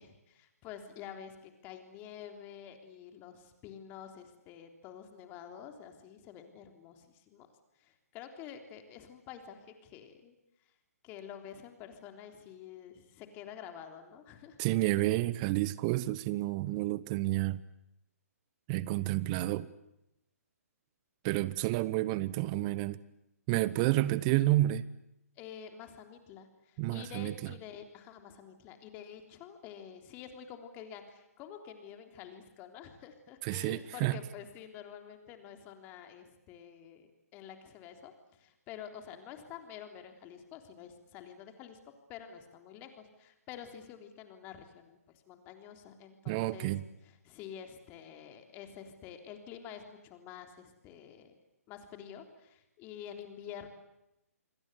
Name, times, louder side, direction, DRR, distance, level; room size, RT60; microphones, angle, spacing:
voice 1, 0.0-7.5 7.8-10.3 11.0-14.6 14.9-15.1 25.4-41.8 42.1-45.0 45.3-46.7 47.0-51.3 51.7-53.7, left 8 dB, 25° left, 3.5 m, -48 dB
voice 2, 14.6-17.6 18.7-19.7 21.2-23.0 23.5-24.9 26.8-27.3 33.4-34.2 46.3-46.8, right 17 dB, 25° right, 1.1 m, -30 dB
28.0 x 22.5 x 8.2 m
figure-of-eight pair, 135°, 9 cm